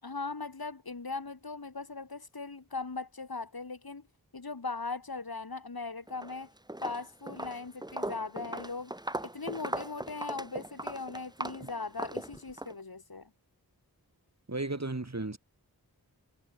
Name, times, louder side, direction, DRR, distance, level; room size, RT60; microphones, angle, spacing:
voice 1, 0.0-4.1 4.3-6.5 6.8-8.9 9.2-13.3, left 3 dB, 70° left, 4.4 m, -39 dB
Walk footsteps, 6.1-6.4 6.7-12.7, right 1 dB, 10° right, 1.2 m, -38 dB
voice 2, 14.5-15.4, right 2 dB, 45° right, 5.7 m, -34 dB
wide cardioid pair, 60°, 38 cm